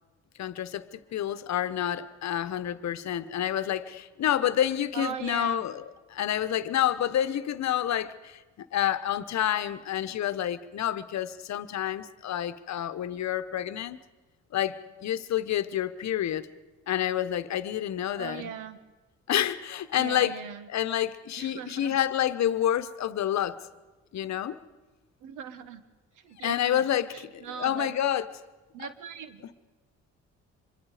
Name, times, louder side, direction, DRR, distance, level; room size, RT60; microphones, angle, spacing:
voice 1, 0.4-5.8 6.1-14.0 14.5-14.8 15.0-16.5 16.9-18.5 19.3-20.3 20.7-23.5 24.1-24.6 26.4-28.3 29.4-29.5, left 11 dB, 65° left, 1.1 m, -28 dB
voice 2, 4.9-5.6 18.2-18.8 20.0-20.7 21.4-22.0 25.2-25.8 26.1-26.8 27.1-27.9 28.7-29.5, right 7 dB, 90° right, 1.5 m, -39 dB
25.5 x 22.5 x 5.0 m
cardioid pair, 90°, 30 cm